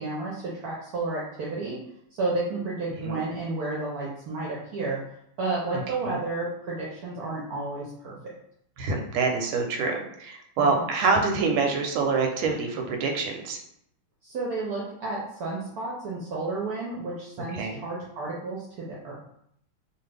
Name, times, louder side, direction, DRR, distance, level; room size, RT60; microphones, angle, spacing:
voice 1, 0.0-1.8 2.1-5.0 5.4-8.3 10.7-10.8 14.2-19.2, right 3 dB, 70° right, -4 dB, 0.9 m, -31 dB
voice 2, 8.8-13.6 17.5-17.8, right 4 dB, 90° right, 3 dB, 1.4 m, -26 dB
3.1 x 2.3 x 3.3 m, 0.72 s
omnidirectional pair, 2.2 m